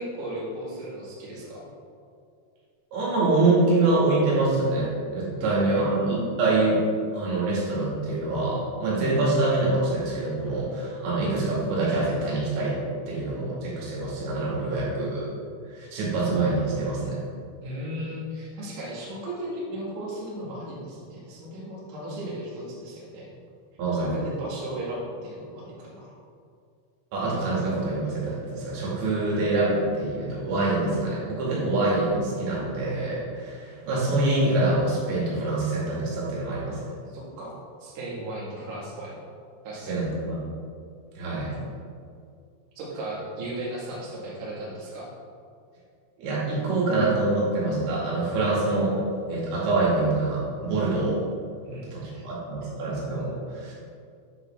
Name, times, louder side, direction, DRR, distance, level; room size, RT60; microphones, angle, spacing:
voice 1, 0.0-1.7 5.4-6.0 14.7-15.1 17.6-23.3 24.0-26.1 37.1-39.1 39.6-40.0 42.8-45.1 51.6-52.3, right 1 dB, 55° right, -5 dB, 3.0 m, -36 dB
voice 2, 2.9-6.8 7.1-12.8 13.1-15.3 15.7-17.2 23.8-24.1 27.1-36.9 39.9-40.4 41.2-41.6 46.2-49.0 49.3-51.2 51.9-53.7, right 2 dB, 75° right, -6 dB, 4.6 m, -25 dB
10.0 x 6.8 x 3.6 m, 2.3 s
omnidirectional pair, 5.3 m